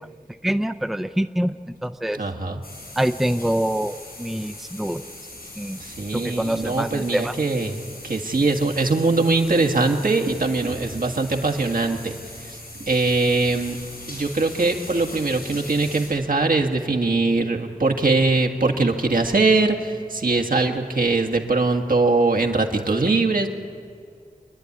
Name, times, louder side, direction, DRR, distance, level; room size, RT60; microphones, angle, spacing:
voice 1, 0.4-2.2 3.0-5.0 5.6-5.8 6.1-7.3, right 1 dB, ahead, 9 dB, 0.5 m, -25 dB
voice 2, 2.1-2.6 5.7-13.8 14.1-23.5, right 3 dB, 70° right, 3 dB, 1.7 m, -22 dB
sound 1, 2.6-16.1, left 2 dB, 85° left, 7.1 m, -40 dB
26.0 x 10.5 x 9.7 m, 2.3 s
wide cardioid pair, 75°, 15 cm